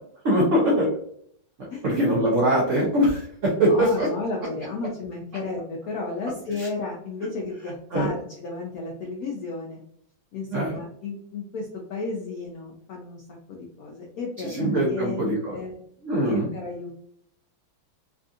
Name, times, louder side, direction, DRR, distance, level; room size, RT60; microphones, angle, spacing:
voice 1, 0.2-0.9 1.8-4.1 6.6-6.7 7.9-8.1 10.5-10.8 14.4-15.6 16.0-16.5, equal, 75° right, -3 dB, 0.7 m, -22 dB
voice 2, 3.5-9.8 10.3-13.2 13.5-15.7 16.2-16.9, left 3 dB, 80° left, -1 dB, 0.8 m, -33 dB
3.5 x 2.6 x 2.4 m, 0.67 s
omnidirectional pair, 2.2 m